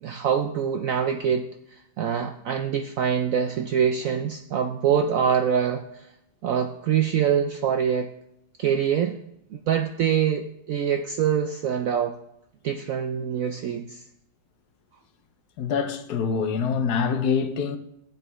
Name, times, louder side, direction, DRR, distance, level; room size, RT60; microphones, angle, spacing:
voice 1, 0.0-1.5 2.0-6.1 6.4-8.1 8.6-9.2 9.5-12.1 12.6-14.0, right 8 dB, 75° right, 0.7 m, -24 dB
voice 2, 15.6-17.8, left 6 dB, 70° left, 1.2 m, -25 dB
12.0 x 8.8 x 3.1 m
omnidirectional pair, 1.9 m